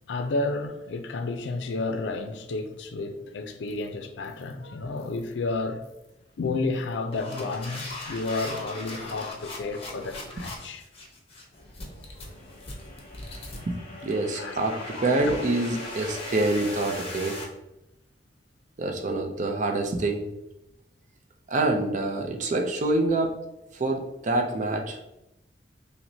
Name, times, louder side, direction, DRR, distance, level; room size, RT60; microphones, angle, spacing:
voice 1, 0.1-5.8 6.4-10.8 14.3-15.4, left 3 dB, 80° left, 0.4 m, -31 dB
sound 1, 3.7-3.9 4.2-4.5 5.0-5.3 5.8-6.1 6.7-17.4, left 2 dB, 35° left, 0.7 m, -39 dB
voice 2, 14.0-17.4 18.8-20.2 21.5-23.3 23.7-25.0, right 2 dB, 45° right, 0.5 m, -26 dB
5.7 x 2.1 x 2.7 m
head